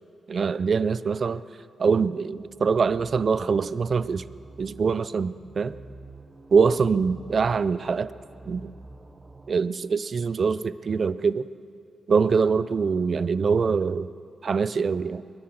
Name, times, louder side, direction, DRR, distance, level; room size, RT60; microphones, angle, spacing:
voice 1, 0.3-1.4 1.8-4.2 4.6-5.8 6.5-8.1 8.5-8.7 9.5-11.5 12.1-14.1 14.4-15.2, right 5 dB, 55° right, 16 dB, 0.5 m, -24 dB
sound 1, 2.3-9.6, right 3 dB, 30° right, 0.9 m, -47 dB
22.5 x 10.5 x 6.1 m, 2.4 s
cardioid pair, 60°, 0 cm